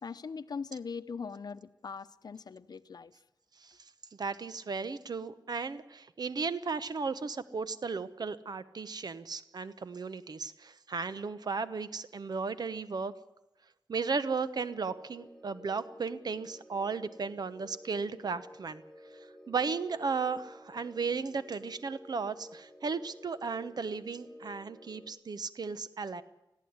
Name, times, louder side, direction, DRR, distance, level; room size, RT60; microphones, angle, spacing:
voice 1, 0.0-3.1, left 5 dB, 65° left, 14 dB, 0.8 m, -41 dB
voice 2, 4.2-13.2 13.9-18.8 19.5-26.2, right 5 dB, 70° right, 13 dB, 1.0 m, -35 dB
sound 1, 14.5-25.1, left 1 dB, 5° left, 1.6 m, -52 dB
20.0 x 14.5 x 9.6 m, 0.90 s
wide cardioid pair, 75°, 7 cm